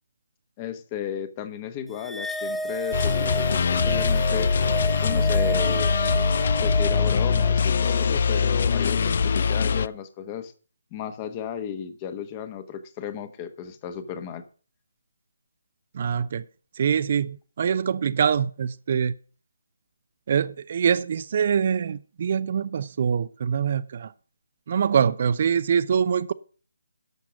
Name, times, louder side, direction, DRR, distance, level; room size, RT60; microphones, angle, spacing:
voice 1, 0.6-4.5 5.0-6.0 6.5-10.5 10.9-14.4, left 9 dB, 25° left, 1.1 m, -34 dB
sound 1, 2.0-8.6, right 1 dB, ahead, 0.6 m, -32 dB
sound 2, 2.9-9.9, left 5 dB, 50° left, 0.4 m, -22 dB
voice 2, 15.9-16.4 16.8-19.1 20.3-24.1 24.7-26.3, right 7 dB, 45° right, 0.5 m, -24 dB
12.0 x 5.9 x 6.3 m
figure-of-eight pair, 150°, 0 cm